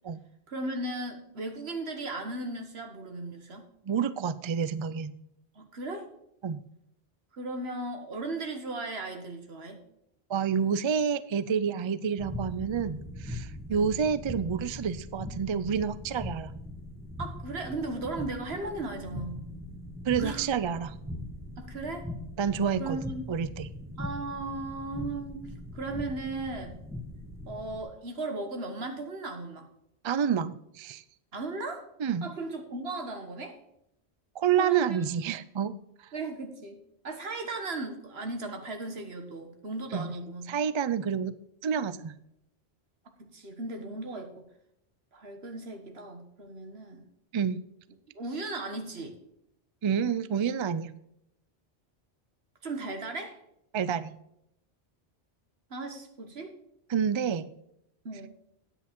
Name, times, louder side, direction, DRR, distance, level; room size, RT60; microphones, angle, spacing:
voice 1, 0.5-3.7 5.6-6.1 7.3-9.8 13.7-13.9 17.2-19.4 20.2-20.5 21.6-22.0 22.8-23.2 24.0-26.8 27.5-29.7 31.3-31.9 32.2-33.6 34.6-35.0 36.1-40.5 43.2-44.5 45.1-47.0 48.2-49.2 52.6-53.4 55.7-56.6 58.1-58.3, right 2 dB, 70° right, 5 dB, 1.7 m, -36 dB
voice 2, 3.9-5.1 6.4-6.7 10.3-16.5 20.1-21.0 22.4-23.0 23.3-23.7 30.0-31.0 32.0-32.3 34.4-35.8 39.9-40.1 40.5-41.3 41.6-42.2 47.3-47.6 49.8-50.9 53.7-54.1 56.9-57.5, right 7 dB, 50° right, 15 dB, 0.3 m, -28 dB
sound 1, 12.2-27.8, left 1 dB, ahead, 1.4 m, -41 dB
9.8 x 8.3 x 4.5 m, 0.78 s
omnidirectional pair, 1.1 m